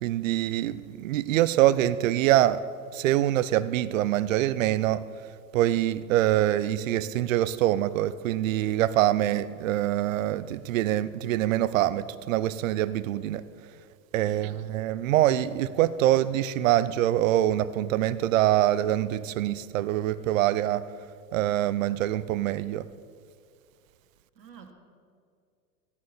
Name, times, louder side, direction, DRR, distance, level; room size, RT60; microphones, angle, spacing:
voice 1, 0.0-2.6 2.9-5.1 5.5-13.4 14.1-20.9 21.3-22.9, right 13 dB, 55° right, 0.6 m, -24 dB
voice 2, 24.3-24.7, right 6 dB, 80° right, 1.7 m, -48 dB
16.0 x 9.3 x 4.2 m
hypercardioid pair, 100°, 49 cm